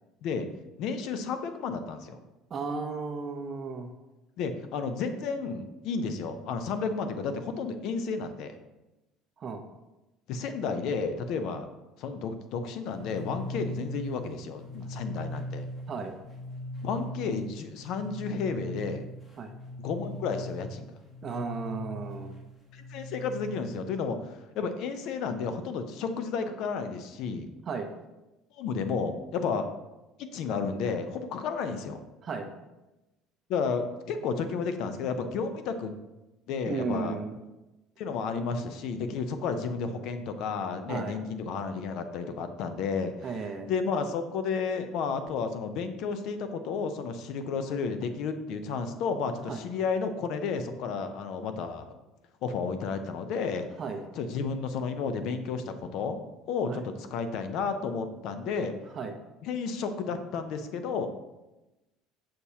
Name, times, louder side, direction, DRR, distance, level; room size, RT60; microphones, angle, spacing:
voice 1, 0.8-2.2 4.4-8.6 10.3-11.7 12.0-15.7 16.8-19.1 19.8-20.9 22.7-27.5 28.5-29.7 30.2-32.0 33.5-35.9 36.5-37.2 38.0-43.3 43.7-51.9 52.4-53.7 54.2-56.2 56.5-58.7 59.4-61.1, left 5 dB, 55° left, 9 dB, 0.6 m, -32 dB
voice 2, 2.5-3.9 9.4-9.6 15.9-16.1 19.4-19.5 21.2-22.3 27.7-27.9 32.2-32.5 36.7-37.3 40.9-41.2 43.2-43.7 49.5-49.6 53.8-54.0 56.7-56.8 58.9-59.1, right 4 dB, 30° right, 5 dB, 0.5 m, -34 dB
sound 1, 12.9-23.8, equal, 20° left, 1.1 m, -40 dB
6.6 x 5.6 x 2.8 m, 1.0 s
cardioid pair, 150°, 0 cm